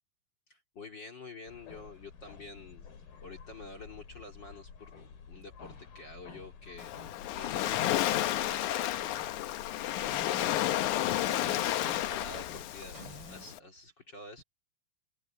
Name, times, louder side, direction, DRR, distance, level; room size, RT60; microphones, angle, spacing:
voice 1, 0.5-2.9 3.2-5.0 5.3-9.1 11.1-13.0 13.3-14.4, left 3 dB, 35° left, 2.6 m, -48 dB
sound 1, 1.5-13.4, left 5 dB, 90° left, 5.8 m, -50 dB
Waves surf, 6.8-13.6, left 13 dB, 70° left, 2.0 m, -31 dB
sound 2, 8.1-9.6 10.0-13.5, right 2 dB, 30° right, 6.2 m, -54 dB
open air
omnidirectional pair, 4.2 m